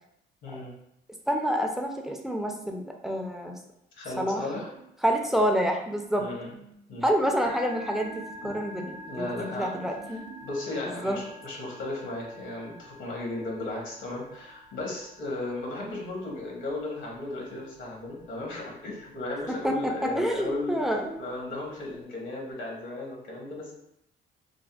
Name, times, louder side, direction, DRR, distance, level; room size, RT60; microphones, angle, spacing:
voice 1, 1.3-3.6 4.2-4.5 5.0-6.3 7.0-10.3 10.9-11.2 19.5-21.2, equal, ahead, 2 dB, 0.4 m, -28 dB
voice 2, 3.9-4.7 6.2-6.5 6.9-7.1 9.1-9.7 10.4-20.8 21.2-23.7, left 2 dB, 75° left, -2 dB, 1.0 m, -35 dB
sound 1, 4.7-10.4, right 8 dB, 70° right, 0.4 m, -50 dB
Musical instrument, 7.3-22.0, equal, 50° right, 0.9 m, -48 dB
3.4 x 2.1 x 2.3 m, 0.78 s
cardioid pair, 90°, 20 cm